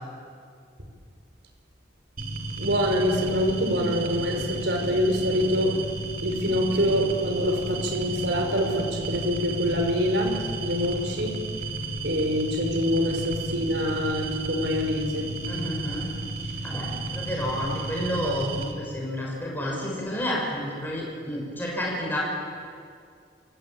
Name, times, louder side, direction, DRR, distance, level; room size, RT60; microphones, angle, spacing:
sound 1, 2.2-18.7, right 2 dB, 50° right, 2.8 m, -33 dB
voice 1, 2.6-5.7 6.2-11.4 12.0-15.3, equal, 75° right, 3 dB, 4.9 m, -25 dB
voice 2, 15.5-16.1 16.4-22.2, equal, 10° left, -3 dB, 6.3 m, -30 dB
27.5 x 18.0 x 9.0 m, 2.2 s
head